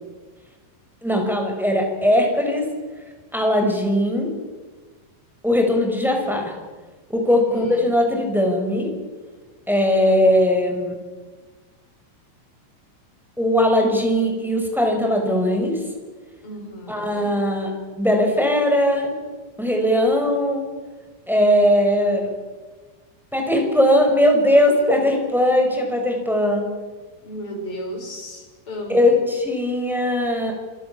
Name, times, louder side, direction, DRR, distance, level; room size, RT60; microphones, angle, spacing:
voice 1, 1.0-2.7 3.3-4.3 5.4-6.5 7.1-8.9 9.7-11.0 13.4-15.8 16.9-19.1 19.6-20.7 21.3-22.3 23.3-26.7 28.9-30.5, left 1 dB, ahead, 2 dB, 5.5 m, -19 dB
voice 2, 7.3-7.9 16.4-17.4 27.2-29.0, equal, 25° left, 0 dB, 7.9 m, -34 dB
27.5 x 26.0 x 7.3 m, 1.3 s
omnidirectional pair, 5.6 m